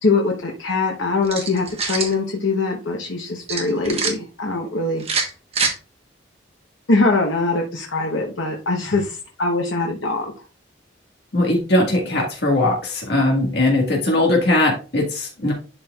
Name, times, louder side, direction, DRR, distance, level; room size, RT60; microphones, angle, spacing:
voice 1, 0.0-5.0 6.9-10.3, left 3 dB, 85° left, 0 dB, 1.0 m, -22 dB
sound 1, 1.2-2.1 3.5-4.1 5.0-5.7, right 4 dB, 30° right, 1.2 m, -24 dB
voice 2, 11.3-15.5, left 1 dB, 60° left, -1 dB, 1.7 m, -19 dB
11.0 x 4.4 x 2.4 m, 0.34 s
head